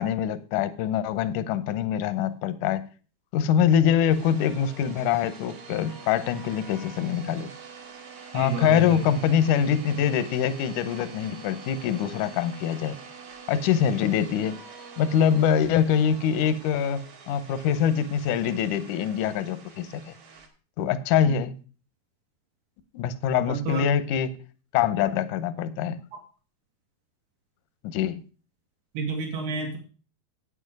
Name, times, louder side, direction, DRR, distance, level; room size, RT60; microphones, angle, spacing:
voice 1, 0.0-2.9 3.3-7.5 8.3-13.0 13.5-14.6 15.0-20.1 20.8-21.5 22.9-24.4 24.7-26.0 27.9-28.2, left 8 dB, 75° left, 12 dB, 1.9 m, -24 dB
sound 1, 4.1-20.5, right 5 dB, 65° right, 3.9 m, -45 dB
voice 2, 8.3-9.0 23.5-23.9 26.1-26.2 29.0-29.8, right 4 dB, 85° right, 1 dB, 4.1 m, -30 dB
9.0 x 8.8 x 4.8 m, 0.36 s
omnidirectional pair, 4.4 m